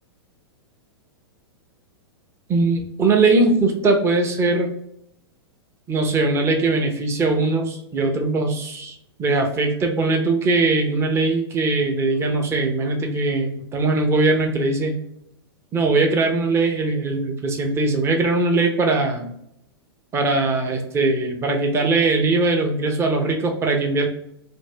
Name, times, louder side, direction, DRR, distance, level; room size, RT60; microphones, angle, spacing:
voice 1, 2.5-4.7 5.9-15.0 15.7-19.3 20.1-24.1, right 3 dB, 20° right, 3 dB, 0.6 m, -20 dB
2.6 x 2.6 x 3.2 m, 0.76 s
hypercardioid pair, 105°, 14 cm